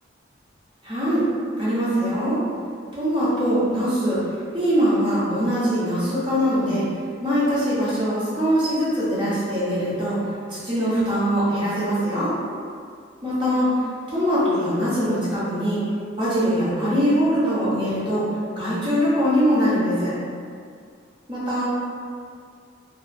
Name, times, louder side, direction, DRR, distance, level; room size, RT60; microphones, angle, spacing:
voice 1, 0.8-1.2 1.6-2.4 3.0-4.2 4.5-6.8 7.2-10.2 10.5-12.3 13.2-13.7 14.1-15.8 16.2-18.2 18.5-20.1 21.3-21.7, equal, 25° right, -11 dB, 0.8 m, -22 dB
2.4 x 2.0 x 2.5 m, 2.2 s
head